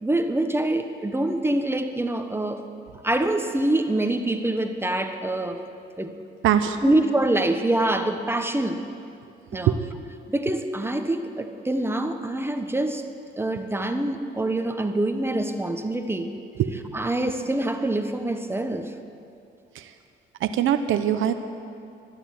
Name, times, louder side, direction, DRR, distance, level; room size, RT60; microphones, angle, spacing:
voice 1, 0.0-2.6 3.0-5.6 6.0-6.1 6.8-8.8 9.5-9.7 10.3-13.0 13.3-16.3 16.9-18.9, right 1 dB, 10° right, 6 dB, 1.1 m, -25 dB
voice 2, 6.4-6.9 9.5-9.8 16.6-16.7 19.7-19.9 20.4-21.3, right 10 dB, 80° right, 9 dB, 0.9 m, -22 dB
13.0 x 11.5 x 9.3 m, 2.5 s
cardioid pair, 90°, 20 cm